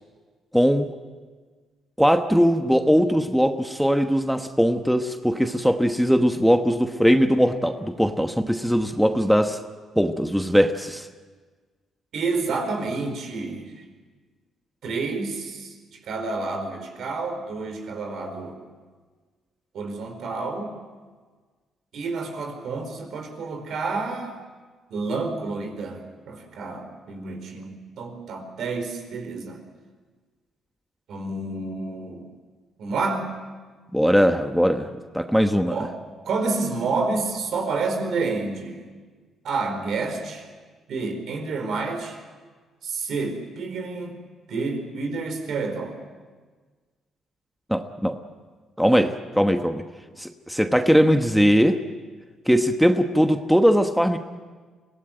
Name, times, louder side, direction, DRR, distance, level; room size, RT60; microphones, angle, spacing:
voice 1, 0.5-0.9 2.0-9.6 10.0-11.1 33.9-34.9 35.1-35.8 47.7-48.2 48.8-49.8 50.2-51.8 52.5-54.2, equal, ahead, 6 dB, 1.2 m, -20 dB
voice 2, 12.1-13.8 14.8-18.6 19.7-20.7 21.9-24.4 24.9-29.6 31.1-32.3 32.8-33.3 35.7-35.9 36.2-38.8 39.4-40.5 40.9-42.2 42.8-44.2 44.5-46.0, right 3 dB, 70° right, 5 dB, 4.5 m, -29 dB
24.0 x 17.5 x 9.1 m, 1.4 s
cardioid pair, 90°, 0 cm